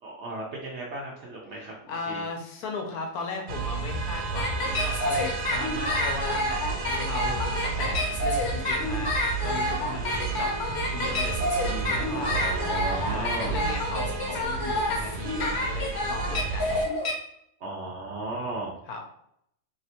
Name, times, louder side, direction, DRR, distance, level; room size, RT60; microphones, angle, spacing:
voice 1, 0.0-2.2 11.6-13.6 17.6-18.7, right 2 dB, 60° right, -3 dB, 0.7 m, -36 dB
voice 2, 1.6-10.6 10.9-11.4 11.9-12.3 12.9-16.8 18.9-19.0, left 3 dB, 75° left, 2 dB, 1.1 m, -36 dB
sound 1, 3.5-16.9, right 4 dB, 80° right, 1.1 m, -32 dB
sound 2, 4.4-17.1, left 1 dB, 45° left, 1.1 m, -28 dB
3.2 x 2.8 x 2.8 m, 0.72 s
omnidirectional pair, 1.7 m